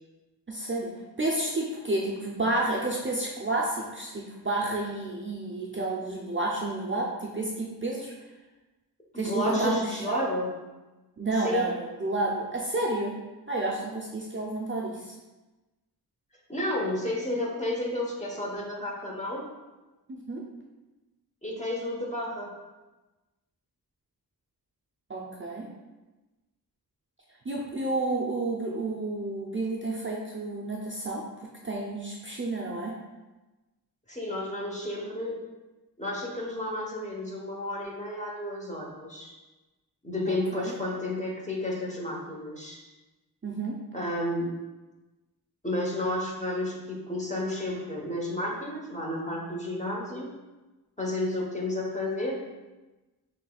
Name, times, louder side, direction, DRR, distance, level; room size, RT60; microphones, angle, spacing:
voice 1, 0.5-0.9 1.2-8.1 9.2-10.3 11.2-13.1 13.5-15.1 20.1-20.4 25.1-25.7 27.5-31.2 31.6-32.9 40.3-40.7 43.4-43.8, right 2 dB, 30° right, -3 dB, 0.5 m, -30 dB
voice 2, 9.1-10.5 11.4-11.7 16.5-19.4 21.4-22.5 34.1-35.4 36.0-39.3 40.0-42.8 43.9-44.5 45.6-50.3 51.0-52.4, left 1 dB, 20° left, -2 dB, 0.9 m, -31 dB
5.8 x 3.2 x 2.3 m, 1.1 s
wide cardioid pair, 80°, 39 cm